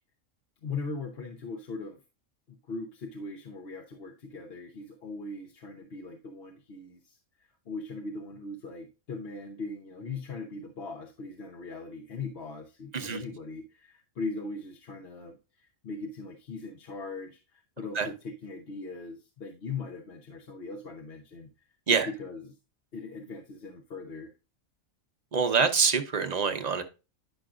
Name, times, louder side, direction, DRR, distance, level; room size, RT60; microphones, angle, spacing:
voice 1, 0.6-2.0 2.7-21.5 21.9-22.5 22.9-24.3, left 3 dB, 50° left, 1.1 m, -40 dB
voice 2, 25.3-26.8, right 5 dB, 35° right, 0.8 m, -25 dB
10.0 x 5.8 x 2.5 m
omnidirectional pair, 1.4 m